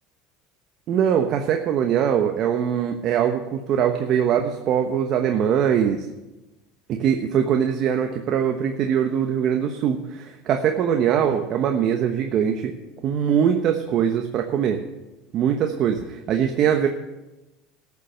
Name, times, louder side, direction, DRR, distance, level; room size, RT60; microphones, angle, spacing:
voice 1, 0.9-6.0 6.9-12.7 13.0-14.8 15.3-16.9, right 8 dB, 50° right, 5 dB, 1.1 m, -22 dB
13.0 x 7.2 x 7.8 m, 1.0 s
supercardioid pair, 105°, 0 cm